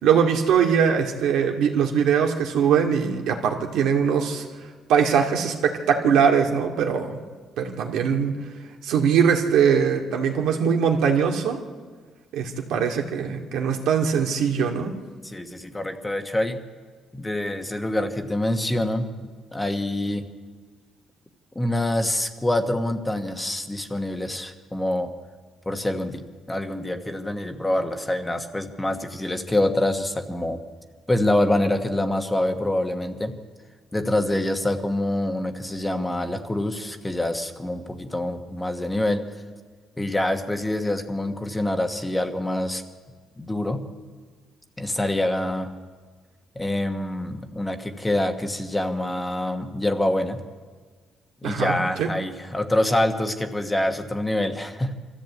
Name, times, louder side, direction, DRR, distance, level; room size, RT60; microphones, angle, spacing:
voice 1, 0.0-4.4 4.9-7.2 7.6-8.3 8.8-11.6 12.3-15.0 51.4-52.1, right 7 dB, 85° right, 3 dB, 2.3 m, -21 dB
voice 2, 15.2-16.6 17.1-20.2 21.5-25.1 25.6-26.2 26.5-30.6 31.1-33.4 33.9-39.2 40.0-42.8 43.4-43.9 44.8-45.8 46.5-50.4 51.4-54.9, left 1 dB, 10° left, 6 dB, 1.3 m, -26 dB
24.5 x 14.0 x 8.5 m, 1.5 s
cardioid pair, 140°, 0 cm